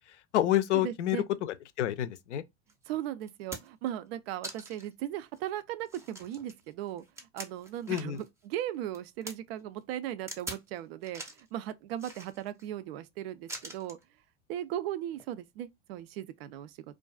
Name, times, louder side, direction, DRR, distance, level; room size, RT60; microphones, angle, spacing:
voice 1, 0.1-2.4 7.9-8.2, left 13 dB, 75° left, 0.5 m, -29 dB
voice 2, 0.8-1.3 2.9-7.0 7.3-14.0 14.5-16.7, right 12 dB, 60° right, 0.5 m, -37 dB
sound 1, 2.7-2.8 3.2-3.9 4.4-4.9 5.3-5.4 5.9-8.3 8.6-9.3 10.3-10.7 11.0-11.5 12.0-12.7 13.5-14.0 15.1-15.3, right 1 dB, 10° right, 0.5 m, -43 dB
2.4 x 2.2 x 2.3 m
hypercardioid pair, 85°, 35 cm